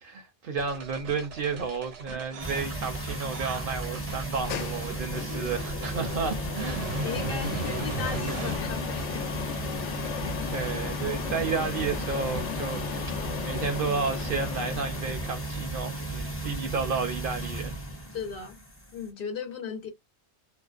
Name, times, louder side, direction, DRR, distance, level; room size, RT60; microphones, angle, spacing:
voice 1, 0.0-6.9 10.5-12.8 13.4-17.8, right 5 dB, 60° right, 0.7 m, -32 dB
sound 1, 0.6-8.6, right 5 dB, 85° right, 1.1 m, -38 dB
sound 2, 2.4-19.1, right 2 dB, 15° left, 0.6 m, -35 dB
sound 3, 4.1-15.7, left 9 dB, 85° left, 0.9 m, -36 dB
voice 2, 7.0-9.6 18.1-18.6 18.9-19.9, left 6 dB, 55° left, 0.8 m, -36 dB
2.5 x 2.1 x 2.4 m
omnidirectional pair, 1.2 m